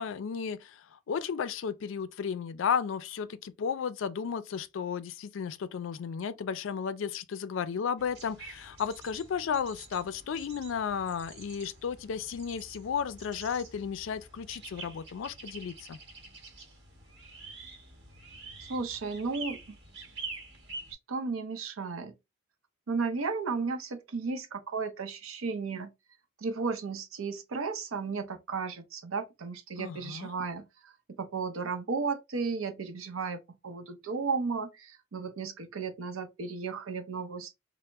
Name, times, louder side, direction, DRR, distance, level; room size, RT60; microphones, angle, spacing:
voice 1, 0.0-16.0 29.8-30.3, left 7 dB, 70° left, 0.3 m, -34 dB
sound 1, 8.0-20.9, right 3 dB, 55° right, 1.0 m, -47 dB
voice 2, 18.7-19.8 21.1-22.1 22.9-25.9 26.4-37.5, right 4 dB, 90° right, 0.6 m, -34 dB
3.3 x 2.0 x 2.9 m
head